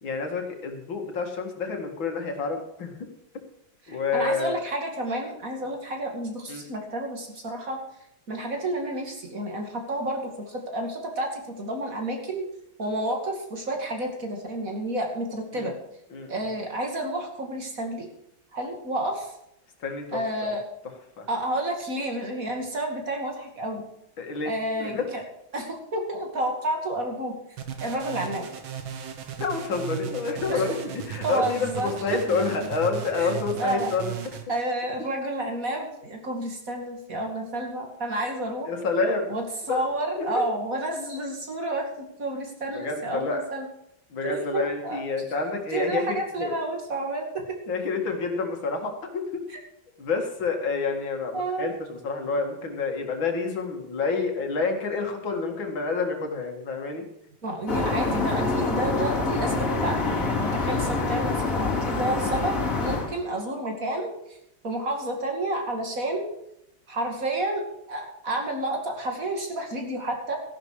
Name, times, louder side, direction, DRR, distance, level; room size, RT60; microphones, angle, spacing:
voice 1, 0.0-3.1 3.9-4.6 6.5-6.6 15.5-15.7 16.1-16.3 19.8-20.5 21.2-21.3 24.2-24.5 24.8-25.1 29.4-34.1 38.7-39.3 39.7-39.8 40.2-40.4 42.7-43.4 44.1-46.6 47.7-49.4 50.0-57.0, left 4 dB, 75° left, 3 dB, 2.8 m, -28 dB
voice 2, 3.9-7.8 8.3-12.4 12.8-15.7 16.3-18.1 18.5-19.3 20.1-20.6 21.3-23.8 24.5-25.2 25.5-27.3 27.8-28.5 30.5-30.6 31.2-32.0 33.2-33.9 34.5-38.7 39.3-43.7 44.2-45.0 45.7-47.3 51.3-51.8 57.4-64.1 64.6-66.3 66.9-70.4, right 1 dB, 45° right, 2 dB, 2.7 m, -30 dB
sound 1, 27.6-34.4, right 8 dB, 80° right, 2.2 m, -36 dB
sound 2, 57.7-63.2, left 3 dB, 40° left, 3.0 m, -26 dB
14.5 x 11.5 x 4.8 m, 0.79 s
omnidirectional pair, 2.2 m